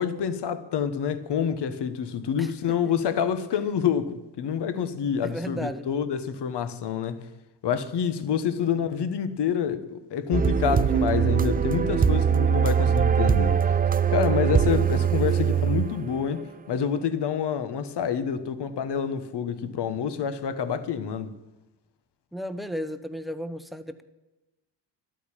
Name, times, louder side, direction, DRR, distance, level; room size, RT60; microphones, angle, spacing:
voice 1, 0.0-7.2 7.6-13.6 14.1-21.3, left 7 dB, 60° left, 1.3 m, -27 dB
voice 2, 2.4-2.9 5.2-5.9 8.5-8.9 14.9-15.1 15.5-15.6 22.3-24.0, equal, ahead, 1.0 m, -35 dB
sound 1, 10.3-16.4, right 7 dB, 20° right, 0.4 m, -22 dB
12.5 x 9.2 x 8.9 m
cardioid pair, 110°, 46 cm